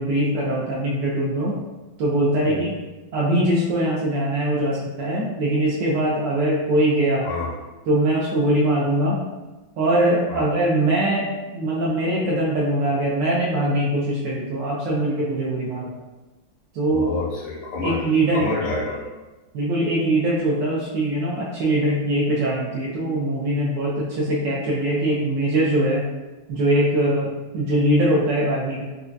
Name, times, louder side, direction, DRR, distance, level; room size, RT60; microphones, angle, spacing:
voice 1, 0.0-1.6 2.0-2.7 3.1-7.3 7.9-9.2 9.8-16.0 16.7-17.1 17.8-18.5 19.5-26.0 26.5-28.8, right 1 dB, 70° right, -6 dB, 1.2 m, -22 dB
voice 2, 16.9-18.0 18.3-19.0, left 2 dB, 75° left, -4 dB, 1.4 m, -28 dB
4.4 x 2.3 x 2.5 m, 1.1 s
omnidirectional pair, 2.2 m